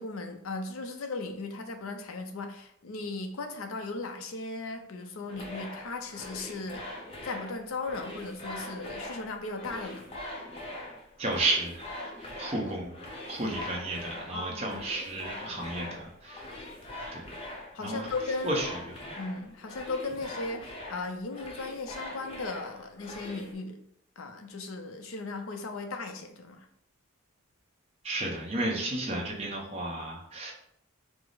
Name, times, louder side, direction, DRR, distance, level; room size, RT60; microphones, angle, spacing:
voice 1, 0.0-6.8 7.2-10.1 14.3-14.8 15.5-15.8 17.7-18.6 19.2-23.8 24.2-26.7, left 3 dB, 75° left, 6 dB, 0.6 m, -37 dB
sound 1, 5.3-23.5, left 1 dB, 25° left, 0.7 m, -42 dB
voice 2, 11.2-12.9 13.3-16.5 17.1-17.2 17.8-18.1 18.4-19.1 28.0-30.5, right 2 dB, 30° right, -2 dB, 0.9 m, -33 dB
4.7 x 2.1 x 3.9 m, 0.71 s
head